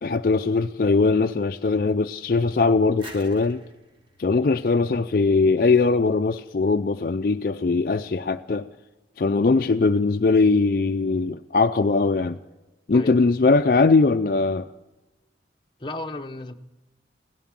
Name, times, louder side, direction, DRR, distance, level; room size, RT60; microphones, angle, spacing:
voice 1, 0.0-3.6 4.2-8.7 9.2-12.4 12.9-14.7, left 3 dB, 55° left, 0.4 m, -20 dB
sound 1, 3.0-5.7, right 2 dB, 30° right, 1.8 m, -47 dB
voice 2, 12.9-13.3 15.8-16.5, left 2 dB, 25° left, 0.8 m, -34 dB
17.0 x 11.0 x 7.4 m
head